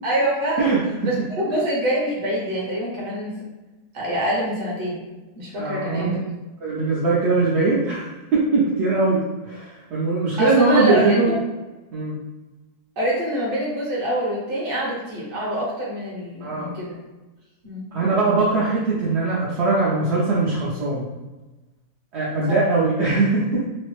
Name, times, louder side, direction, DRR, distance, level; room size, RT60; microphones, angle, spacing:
voice 1, 0.0-0.7 1.1-3.4 3.9-5.0 5.4-6.2 10.4-11.2 13.0-17.0 17.6-17.9 22.5-22.6, right 1 dB, 40° right, -5 dB, 0.9 m, -25 dB
voice 2, 5.6-6.1 6.6-11.3 11.9-12.1 16.4-16.7 17.9-21.0 22.1-23.7, right 3 dB, 65° right, -7 dB, 0.7 m, -21 dB
3.1 x 2.1 x 3.0 m, 1.1 s
omnidirectional pair, 1.7 m